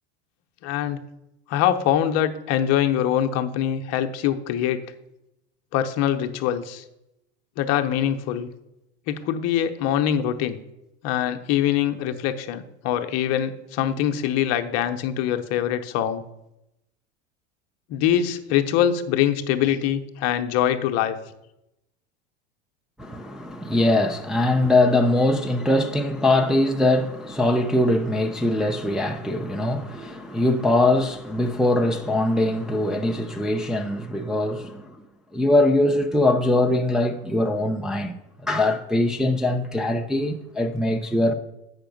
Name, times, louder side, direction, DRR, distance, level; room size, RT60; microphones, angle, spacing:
voice 1, 0.6-1.0 1.5-4.8 5.7-6.8 7.6-8.5 9.1-10.6 11.0-16.2 17.9-21.2, left 10 dB, 50° left, 0.8 m, -23 dB
voice 2, 23.0-35.0 35.3-41.3, left 1 dB, ahead, 0.5 m, -22 dB
8.0 x 5.7 x 5.2 m
supercardioid pair, 110°, 32 cm